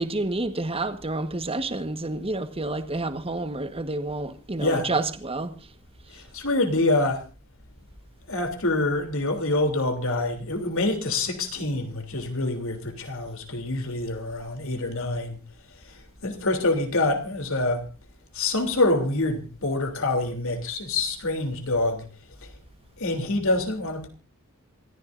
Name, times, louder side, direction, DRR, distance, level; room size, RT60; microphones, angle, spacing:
voice 1, 0.0-5.5, right 2 dB, 25° right, 1.4 m, -29 dB
voice 2, 4.6-4.9 6.1-7.2 8.3-15.4 15.8-17.9 18.3-22.1 22.4-22.5 23.0-24.1, left 2 dB, 65° left, 3.2 m, -26 dB
27.0 x 14.5 x 2.6 m
head